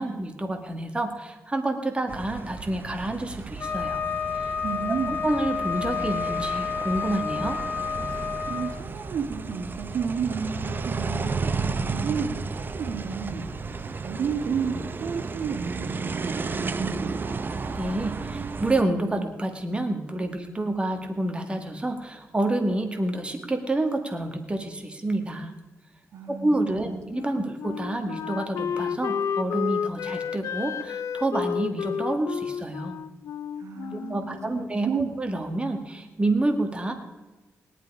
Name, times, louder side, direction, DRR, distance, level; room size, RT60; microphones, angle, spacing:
voice 1, 0.0-4.0 4.3-4.5 4.9-7.6 17.8-25.5 26.3-32.9 33.9-36.9, right 2 dB, 20° right, 5 dB, 1.8 m, -28 dB
sound 1, 2.1-18.8, right 4 dB, 40° right, 0.8 m, -33 dB
Wind instrument woodwind instrument, 3.6-8.7, left 6 dB, 35° left, 2.5 m, -30 dB
voice 2, 4.6-5.2 8.1-17.3 26.1-26.5 26.8-27.0 27.4-27.5 33.6-35.1, right 6 dB, 75° right, 4 dB, 2.2 m, -32 dB
Wind instrument woodwind instrument 2, 27.1-34.6, left 7 dB, 90° left, 0.6 m, -31 dB
18.0 x 11.5 x 4.8 m, 1.2 s
cardioid pair, 95°, 5 cm